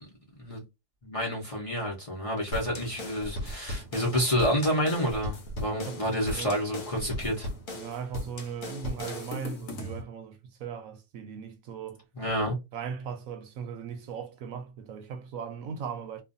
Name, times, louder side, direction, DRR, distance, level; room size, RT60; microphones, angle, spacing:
voice 1, 1.0-7.5 12.2-12.6, equal, 30° left, 0.8 m, -29 dB
sound 1, 2.5-10.0, left 1 dB, 70° left, 1.1 m, -37 dB
voice 2, 7.7-12.0 12.7-16.2, right 7 dB, 75° right, 0.9 m, -38 dB
2.5 x 2.4 x 2.5 m
omnidirectional pair, 1.5 m